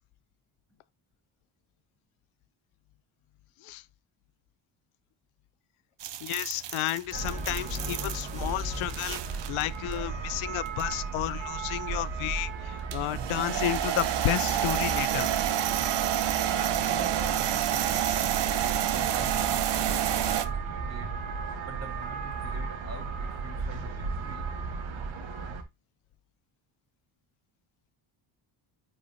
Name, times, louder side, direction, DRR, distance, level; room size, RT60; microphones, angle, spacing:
sound 1, 6.0-9.6 9.9-10.0 10.7-11.1 12.9-20.5, right 11 dB, 60° right, 0.8 m, -29 dB
voice 1, 6.2-9.2 9.5-15.3, left 15 dB, 90° left, 0.6 m, -32 dB
sound 2, 7.0-9.4, left 1 dB, 15° right, 1.2 m, -39 dB
sound 3, 7.1-25.6, right 5 dB, 80° right, 1.4 m, -35 dB
voice 2, 16.9-18.5 18.8-21.1 21.6-24.5, right 2 dB, 35° right, 3.3 m, -45 dB
10.5 x 4.4 x 2.6 m
cardioid pair, 120°, 47 cm